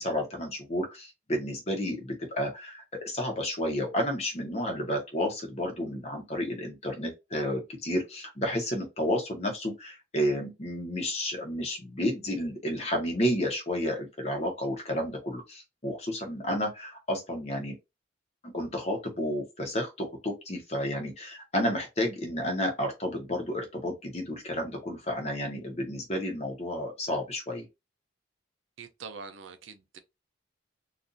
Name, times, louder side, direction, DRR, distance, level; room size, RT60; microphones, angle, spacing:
voice 1, 0.0-17.7 18.4-27.7, equal, 35° left, 1.0 m, -31 dB
voice 2, 28.8-30.0, right 5 dB, 75° right, 0.5 m, -44 dB
3.9 x 2.5 x 2.5 m
head